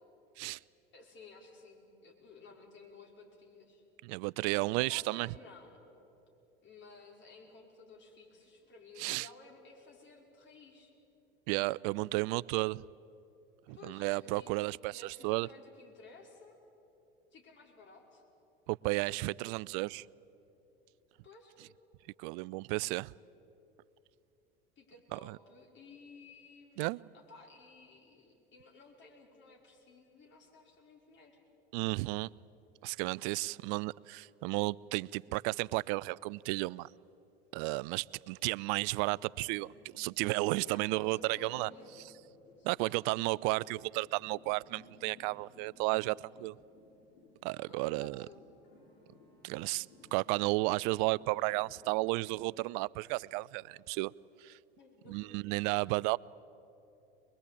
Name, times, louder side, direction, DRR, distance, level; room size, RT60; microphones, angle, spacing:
voice 1, 0.9-3.8 4.4-5.9 6.6-10.9 13.7-14.6 14.9-16.6 17.3-18.2 21.2-21.6 24.8-26.9 27.1-31.4 40.6-42.0 42.6-43.0 47.7-48.4 54.8-55.4, left 3 dB, 40° left, 5.3 m, -55 dB
voice 2, 4.0-5.3 9.0-9.3 11.5-12.8 13.7-15.5 18.7-20.1 22.2-23.1 25.1-25.4 26.8-27.0 31.7-32.3 32.8-36.9 37.5-41.7 42.6-46.5 47.4-48.3 49.4-49.9 50.1-54.1 54.4-54.6 55.1-56.2, right 23 dB, 60° right, 0.5 m, -33 dB
sound 1, 39.1-52.0, left 2 dB, 75° left, 6.9 m, -61 dB
23.5 x 22.0 x 8.5 m
hypercardioid pair, 90°, 29 cm